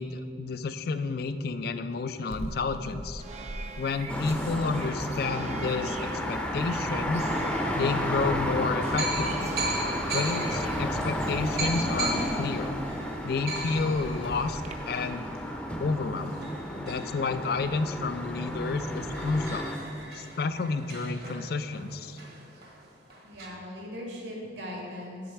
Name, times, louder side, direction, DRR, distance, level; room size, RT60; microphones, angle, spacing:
voice 1, 0.0-3.2 3.8-7.3 7.7-9.6 10.1-12.8 13.2-15.3 15.8-16.4 16.8-19.7 20.1-22.2, left 4 dB, 60° left, 11 dB, 0.4 m, -30 dB
sound 1, 2.3-14.7, right 2 dB, 40° right, 0.6 m, -42 dB
sound 2, 4.1-19.8, equal, 5° left, 0.6 m, -32 dB
sound 3, 9.0-18.1 18.5-18.6 18.8-23.5, right 2 dB, 60° right, 1.2 m, -38 dB
voice 2, 23.2-25.3, left 1 dB, 80° right, -2 dB, 1.7 m, -39 dB
7.8 x 7.2 x 4.5 m, 2.4 s
head